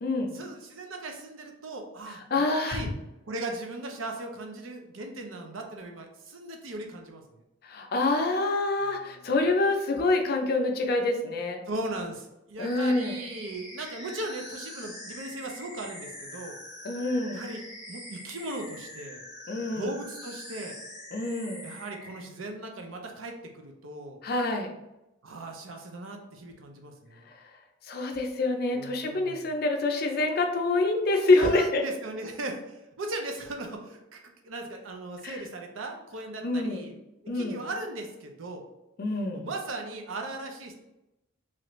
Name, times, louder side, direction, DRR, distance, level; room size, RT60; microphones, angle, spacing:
voice 1, 0.3-2.9 3.2-7.4 8.8-9.3 11.7-16.6 17.3-19.2 19.7-20.7 21.6-24.2 25.2-27.3 28.7-29.5 31.4-34.2 34.4-36.9 37.3-38.6 39.3-40.7, right 2 dB, 90° right, 3 dB, 0.6 m, -38 dB
voice 2, 2.3-2.8 7.6-11.6 12.6-13.2 16.8-17.5 19.5-19.9 21.1-21.7 24.2-24.7 27.8-31.8 35.2-35.4 36.4-36.9 37.3-37.6 39.0-39.5, left 2 dB, 50° left, 4 dB, 0.5 m, -26 dB
sound 1, 12.6-22.2, left 1 dB, 20° right, 0.9 m, -44 dB
3.1 x 2.5 x 3.0 m, 0.91 s
head